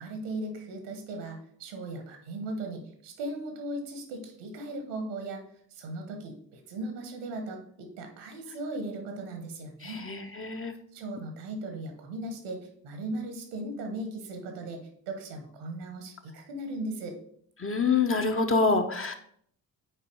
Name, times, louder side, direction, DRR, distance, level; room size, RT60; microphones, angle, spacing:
voice 1, 0.0-5.4 5.7-10.0 10.9-12.6 12.8-17.2, right 2 dB, 70° right, 5 dB, 1.4 m, -37 dB
voice 2, 9.8-10.7 17.6-19.1, left 4 dB, 25° left, 5 dB, 0.9 m, -26 dB
6.8 x 4.6 x 4.6 m, 0.65 s
figure-of-eight pair, 40°, 49 cm